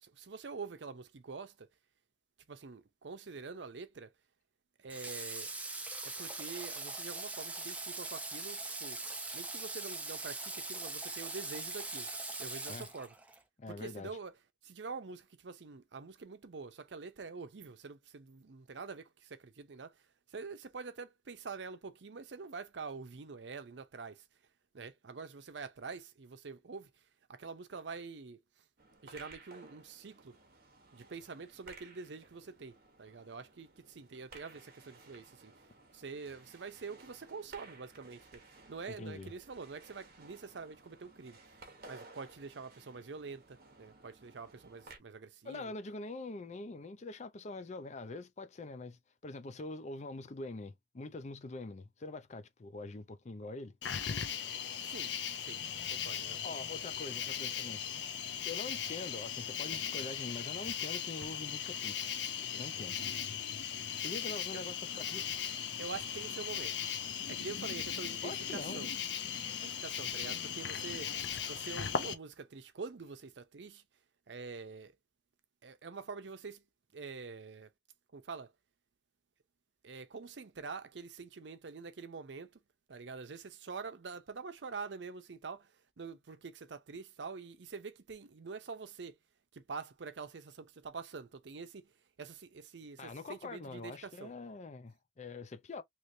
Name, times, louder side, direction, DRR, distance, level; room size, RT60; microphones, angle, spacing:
voice 1, 0.0-1.7 2.5-4.1 4.8-5.5 6.0-9.0 9.3-12.1 12.4-13.1 13.7-14.3 14.6-20.0 20.3-24.2 24.7-26.9 27.3-28.4 29.0-30.3 30.9-35.5 35.9-38.4 38.7-41.4 41.9-45.7 54.8-55.6 55.9-56.6 64.5-64.6 65.8-66.7 67.3-68.9 69.6-71.2 71.4-73.8 74.3-74.9 75.6-76.6 76.9-77.7 78.1-78.5 79.8-82.5 82.9-89.2 89.5-91.9 92.2-94.3, right 4 dB, 80° right, 0.6 m, -46 dB
Water / Water tap faucet, 4.9-13.4, right 3 dB, 10° right, 0.6 m, -41 dB
voice 2, 13.6-14.1 39.0-39.3 45.4-53.8 56.4-57.8 58.4-62.1 62.5-63.0 64.0-65.3 68.2-68.8 93.0-95.8, left 3 dB, 40° left, 0.5 m, -44 dB
sound 1, 28.8-45.0, right 3 dB, 55° right, 1.0 m, -57 dB
Cricket, 53.8-72.1, left 8 dB, 80° left, 0.7 m, -38 dB
3.2 x 3.0 x 2.6 m
head